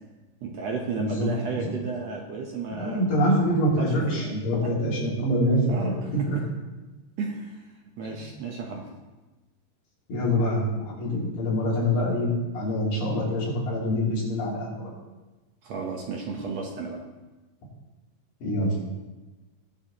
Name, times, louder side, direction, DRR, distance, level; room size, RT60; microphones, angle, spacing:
voice 1, 0.4-3.0 3.8-4.3 4.6-4.7 5.7-6.3 7.2-7.6 8.0-8.9 15.6-17.0, right 4 dB, 65° right, 1 dB, 1.8 m, -33 dB
voice 2, 1.0-1.7 2.7-6.4 8.2-8.3 10.1-12.3 12.5-14.9 18.4-18.8, equal, 80° left, -6 dB, 4.9 m, -25 dB
21.0 x 7.1 x 2.9 m, 1.2 s
omnidirectional pair, 3.9 m